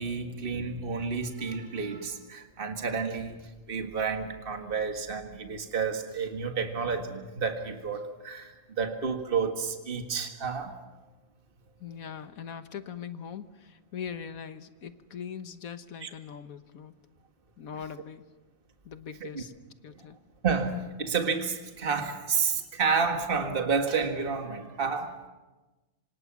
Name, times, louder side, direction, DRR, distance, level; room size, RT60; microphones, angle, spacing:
voice 1, 0.0-3.4 3.7-10.7 16.0-16.1 19.2-19.4 20.0-20.1 20.4-25.2, right 5 dB, 40° right, 5 dB, 1.9 m, -30 dB
voice 2, 11.8-16.9 17.6-18.2 18.8-19.5 19.8-20.2, left 7 dB, 85° left, 10 dB, 1.6 m, -41 dB
27.0 x 26.0 x 6.1 m, 1.2 s
omnidirectional pair, 1.4 m